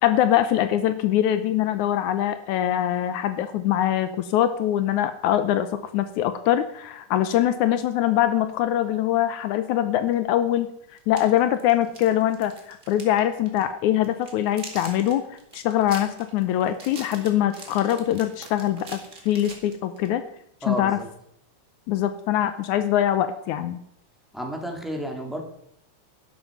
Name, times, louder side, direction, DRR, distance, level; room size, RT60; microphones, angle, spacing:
voice 1, 0.0-10.7 11.1-15.2 15.5-19.0 19.3-20.2 20.7-21.0 21.9-23.8, left 11 dB, 80° left, 10 dB, 2.2 m, -23 dB
sound 1, 10.1-10.2 11.0-13.2 13.5-13.6 14.0-20.1, right 3 dB, 25° right, 2.2 m, -43 dB
voice 2, 20.6-21.1 24.3-25.4, equal, ahead, 0 dB, 2.3 m, -31 dB
12.0 x 11.5 x 5.3 m, 0.69 s
omnidirectional pair, 3.5 m